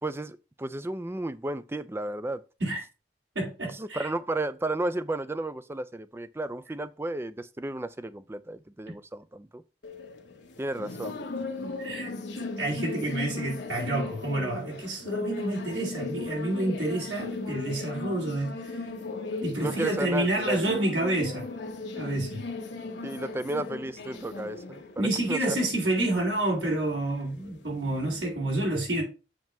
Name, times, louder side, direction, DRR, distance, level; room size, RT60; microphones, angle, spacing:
voice 1, 0.0-2.4 3.7-9.6 10.6-11.3 19.6-20.8 23.0-25.6, right 2 dB, 15° right, 0.4 m, -33 dB
voice 2, 3.4-4.1 11.8-12.1 12.6-18.9 19.4-21.5 22.0-22.5 25.0-29.0, right 1 dB, 90° right, 3.5 m, -29 dB
sound 1, 9.8-28.2, left 3 dB, 75° left, 1.1 m, -37 dB
7.3 x 3.0 x 5.8 m
head